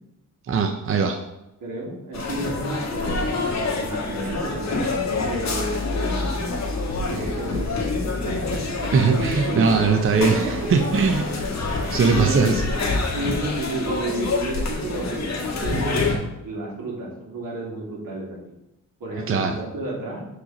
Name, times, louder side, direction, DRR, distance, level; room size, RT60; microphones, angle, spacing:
voice 1, 0.5-1.2 8.9-11.2 11.7-12.6 19.3-19.6, right 5 dB, 40° right, 5 dB, 0.6 m, -20 dB
voice 2, 1.6-3.3 3.7-6.3 7.0-9.9 10.3-10.7 12.0-12.6 13.1-18.4 19.0-20.3, right 2 dB, 85° right, -2 dB, 2.3 m, -31 dB
sound 1, 2.1-16.2, left 3 dB, 55° left, 1.6 m, -27 dB
6.8 x 4.9 x 3.9 m, 0.93 s
wide cardioid pair, 125°, 34 cm